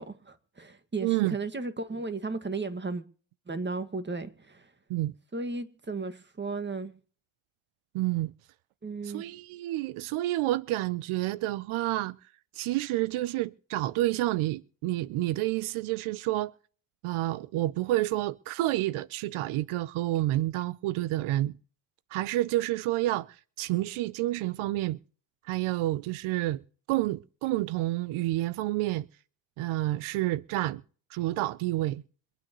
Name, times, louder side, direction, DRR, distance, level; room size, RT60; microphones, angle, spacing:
voice 1, 0.0-3.0 3.5-4.7 5.3-6.9 8.8-9.2, right 3 dB, 20° right, 1.7 m, -35 dB
voice 2, 1.0-1.3 4.9-5.1 7.9-8.3 9.1-12.2 12.5-16.5 17.0-21.5 22.1-25.0 25.5-26.6 26.9-29.1 29.6-30.8 31.1-32.0, right 16 dB, 90° right, 0.6 m, -29 dB
26.0 x 9.3 x 3.0 m
cardioid pair, 95°, 48 cm